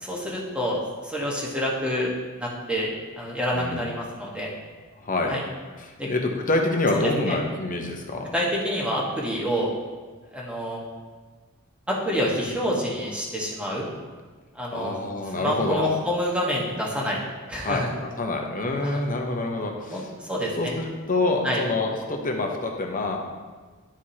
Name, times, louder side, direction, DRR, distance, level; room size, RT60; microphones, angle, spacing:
voice 1, 0.0-2.1 2.4-2.9 3.1-4.5 5.3-5.4 6.0-6.1 7.0-7.3 8.3-9.7 10.3-10.8 11.9-13.8 14.5-14.9 15.4-17.2 17.5-17.9 18.8-19.0 19.8-20.7 21.4-21.6, equal, 5° right, -4 dB, 1.3 m, -27 dB
voice 2, 3.5-3.9 5.0-5.3 5.8-8.3 14.7-15.9 17.6-20.1 20.6-23.2, left 2 dB, 40° left, 2 dB, 0.9 m, -27 dB
11.5 x 4.7 x 2.9 m, 1.4 s
head